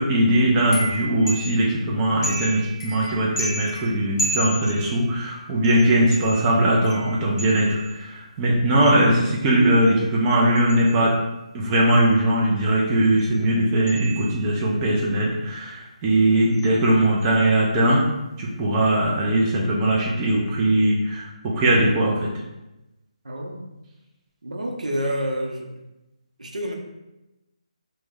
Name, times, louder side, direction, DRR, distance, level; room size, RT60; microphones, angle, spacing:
voice 1, 0.0-11.2 11.5-18.0 18.4-22.3, right 1 dB, 15° right, -4 dB, 0.4 m, -20 dB
sound 1, 0.6-1.8 2.2-5.2 5.6-8.0 8.8-9.1 9.6-11.3 13.2-13.4 13.9-14.6 16.5-16.8 17.0-17.4, right 1 dB, 25° left, 0.7 m, -33 dB
voice 2, 23.2-23.7 24.4-25.7 26.4-26.7, equal, 90° right, 1 dB, 0.6 m, -28 dB
3.0 x 2.1 x 3.5 m, 0.97 s
figure-of-eight pair, 160°, 4 cm